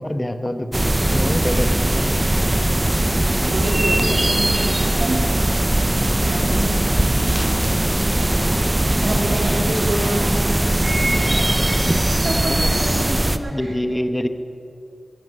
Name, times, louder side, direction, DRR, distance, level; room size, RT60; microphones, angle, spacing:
voice 1, 0.1-2.2 12.8-12.9 13.5-14.3, left 1 dB, 15° left, 9 dB, 1.0 m, -25 dB
sound 1, 0.7-13.4, right 1 dB, 20° right, 0.7 m, -19 dB
sound 2, 1.2-13.5, left 2 dB, 85° left, 3.0 m, -42 dB
voice 2, 3.4-5.2 6.2-7.1 8.7-10.3 10.7-11.5 12.2-13.8, right 2 dB, 65° right, -1 dB, 3.5 m, -28 dB
14.0 x 10.5 x 9.7 m, 2.6 s
wide cardioid pair, 75°, 0 cm